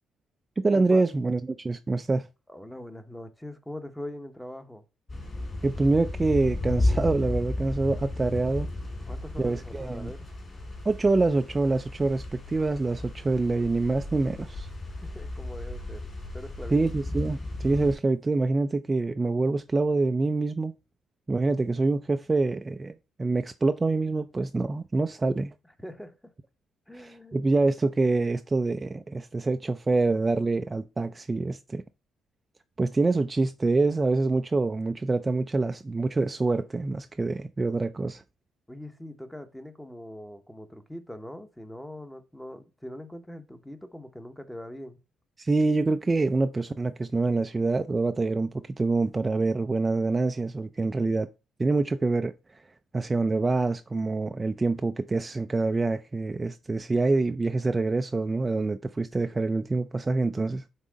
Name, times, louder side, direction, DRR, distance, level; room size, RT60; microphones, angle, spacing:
voice 1, 0.6-2.3 5.6-8.7 9.4-10.1 10.9-14.7 16.7-20.7 21.3-25.5 27.0-31.8 32.8-38.2 45.4-48.5 48.8-51.3 51.6-52.3 52.9-60.6, right 3 dB, 25° right, 0.4 m, -26 dB
voice 2, 2.5-4.8 9.1-10.3 14.9-16.8 25.8-26.3 26.9-27.5 38.7-45.0, left 1 dB, 5° left, 0.9 m, -42 dB
sound 1, 5.1-18.0, left 2 dB, 30° left, 3.5 m, -34 dB
5.6 x 3.7 x 5.1 m
cardioid pair, 90°, 0 cm